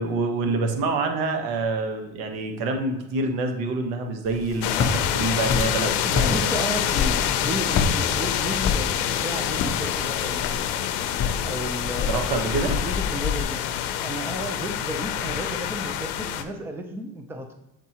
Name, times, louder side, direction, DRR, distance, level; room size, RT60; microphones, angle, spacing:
voice 1, 0.0-6.5 12.1-12.8, right 3 dB, 80° right, 4 dB, 1.2 m, -27 dB
Walk footsteps, 4.3-13.4, left 6 dB, 35° left, 0.7 m, -29 dB
sound 1, 4.6-16.4, left 10 dB, 80° left, 0.6 m, -27 dB
voice 2, 6.0-10.8 11.4-12.3 12.8-13.6 14.0-17.5, right 1 dB, 5° right, 5 dB, 0.5 m, -33 dB
7.2 x 4.5 x 2.9 m, 0.93 s
cardioid pair, 125°, 37 cm